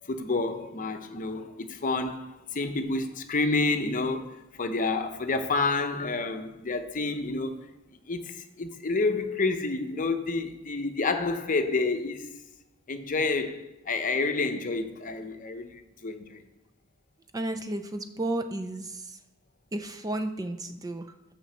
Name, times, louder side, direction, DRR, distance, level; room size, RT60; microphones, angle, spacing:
voice 1, 0.0-7.7 8.1-12.4 12.9-16.4, left 3 dB, 40° left, 0.7 m, -29 dB
voice 2, 17.3-19.2 19.7-21.1, right 1 dB, 20° right, 0.4 m, -33 dB
6.2 x 5.2 x 6.8 m
head